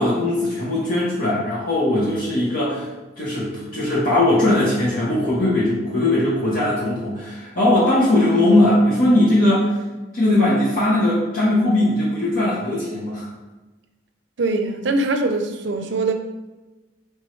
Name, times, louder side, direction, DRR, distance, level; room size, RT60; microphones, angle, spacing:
voice 1, 0.0-2.8 3.2-9.7 10.1-13.3, left 1 dB, 50° left, -8 dB, 1.0 m, -19 dB
voice 2, 14.4-16.1, right 2 dB, 70° right, 6 dB, 0.5 m, -22 dB
4.6 x 3.5 x 3.1 m, 1.1 s
head